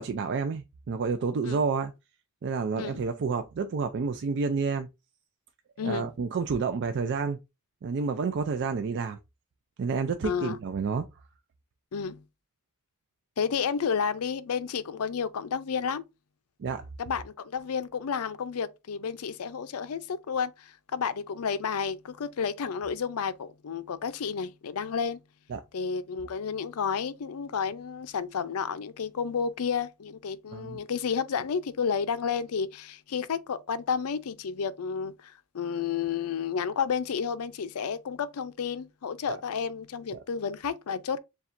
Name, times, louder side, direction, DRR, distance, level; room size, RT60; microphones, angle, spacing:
voice 1, 0.0-1.9 2.4-4.9 5.8-7.4 7.8-9.2 9.8-11.1 16.6-16.8 25.5-25.6 30.5-30.8 39.3-39.4 40.1-40.2, right 5 dB, 55° right, 0.4 m, -29 dB
voice 2, 5.8-6.1 10.2-10.6 11.9-12.2 13.4-16.0 17.0-25.2 25.7-41.2, left 6 dB, 75° left, 0.5 m, -31 dB
7.0 x 2.3 x 2.5 m
head